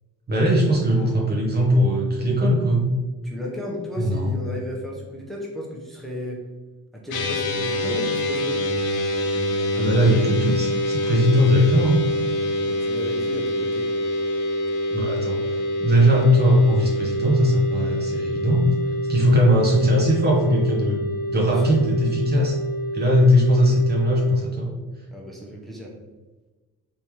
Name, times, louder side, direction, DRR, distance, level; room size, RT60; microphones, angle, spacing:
voice 1, 0.3-2.9 4.0-4.3 9.7-12.0 14.9-18.6 19.1-21.0 21.3-22.6 22.9-24.7, equal, 35° right, -2 dB, 0.8 m, -19 dB
voice 2, 3.2-6.4 6.9-8.6 12.7-13.9 21.4-21.8 25.1-25.9, equal, ahead, -3 dB, 0.9 m, -34 dB
sound 1, 7.1-24.4, left 1 dB, 90° left, 0.7 m, -26 dB
3.6 x 2.7 x 3.0 m, 1.2 s
cardioid pair, 90°, 30 cm